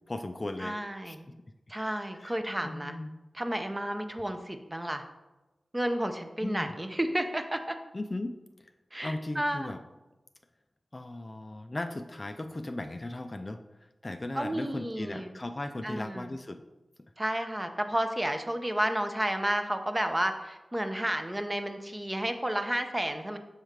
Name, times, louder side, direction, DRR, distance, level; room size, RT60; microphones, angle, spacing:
voice 1, 0.1-0.8 1.0-1.2 2.2-2.4 2.6-3.1 6.4-6.7 7.9-8.4 9.0-9.8 10.9-13.6 14.0-16.6, left 2 dB, 35° left, 7 dB, 0.4 m, -37 dB
voice 2, 0.6-1.3 1.7-2.9 3.3-5.0 5.7-7.8 8.9-9.7 14.4-15.3 15.8-16.4 17.2-23.4, right 1 dB, 20° right, 6 dB, 0.6 m, -31 dB
6.4 x 3.1 x 5.0 m, 1.1 s
wide cardioid pair, 60°, 0 cm